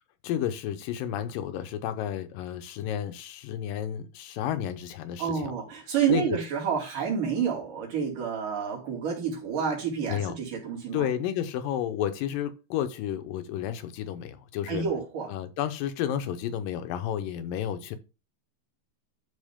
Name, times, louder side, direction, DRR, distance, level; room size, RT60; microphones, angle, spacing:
voice 1, 0.2-5.5 6.1-6.4 10.1-10.4 10.9-14.8 15.3-18.0, left 10 dB, 85° left, 2.5 m, -31 dB
voice 2, 5.2-11.1 14.7-15.3, right 7 dB, 70° right, 4.2 m, -29 dB
12.0 x 4.3 x 3.6 m
omnidirectional pair, 3.9 m